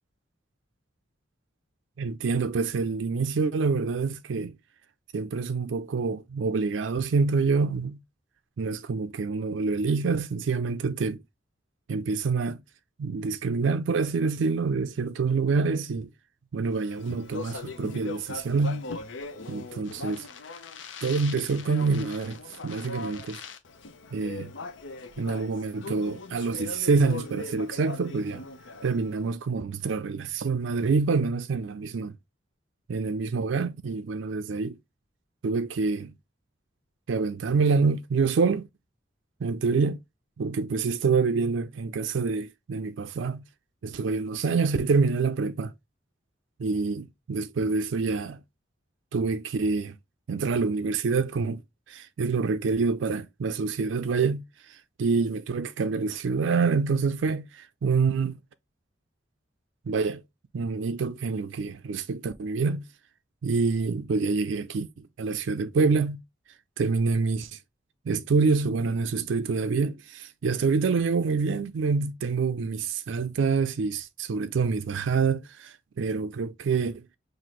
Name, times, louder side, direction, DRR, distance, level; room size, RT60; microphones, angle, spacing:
voice 1, 2.0-4.6 5.1-8.0 8.6-11.2 11.9-12.6 13.0-16.1 16.5-18.8 19.5-20.3 21.0-22.4 22.6-23.4 24.1-24.5 25.2-28.5 28.8-32.1 32.9-34.7 35.4-36.1 37.1-38.7 39.4-40.0 40.4-43.4 43.8-45.7 46.6-48.4 49.1-50.0 50.3-51.6 51.9-54.4 55.0-58.3 59.9-60.2 60.5-62.8 63.4-66.2 66.8-67.6 68.1-77.0, right 4 dB, 80° right, 0.4 m, -26 dB
Speech, 16.8-29.2, left 4 dB, 80° left, 0.6 m, -40 dB
5.8 x 2.6 x 3.1 m
head